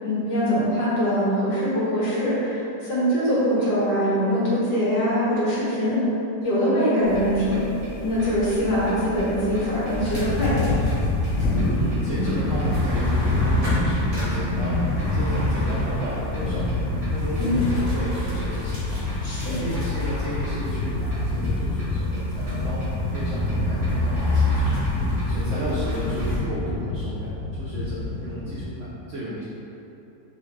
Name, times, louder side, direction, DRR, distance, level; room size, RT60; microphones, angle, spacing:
voice 1, 0.0-6.0 6.4-7.6 8.0-10.6 17.4-17.6 19.2-19.5, equal, 65° left, -9 dB, 1.9 m, -23 dB
sound 1, 7.0-26.4, left 1 dB, 25° right, 1.1 m, -29 dB
sound 2, 10.0-28.7, left 2 dB, 85° left, 0.7 m, -27 dB
voice 2, 11.7-16.7 17.1-19.0 19.6-22.9 23.1-24.8 25.3-29.4, right 1 dB, 70° right, -7 dB, 0.7 m, -33 dB
4.0 x 4.0 x 3.2 m, 2.9 s
omnidirectional pair, 2.0 m